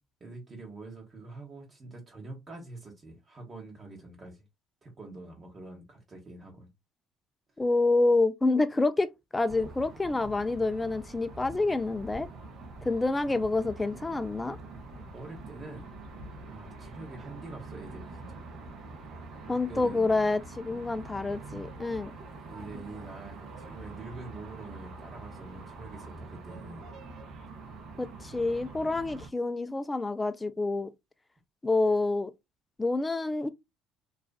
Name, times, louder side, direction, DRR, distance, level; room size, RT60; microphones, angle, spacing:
voice 1, 0.2-4.4 4.8-6.7 13.1-13.4 14.9-15.9 16.5-18.4 19.7-20.1 22.5-26.9, right 3 dB, 35° right, 1.0 m, -45 dB
voice 2, 7.6-12.3 12.8-14.6 19.5-22.1 28.0-30.9 31.6-32.3 32.8-33.5, left 2 dB, 15° left, 0.4 m, -27 dB
sound 1, 9.5-29.3, right 3 dB, 55° right, 0.7 m, -45 dB
2.5 x 2.4 x 2.2 m
supercardioid pair, 85°, 0 cm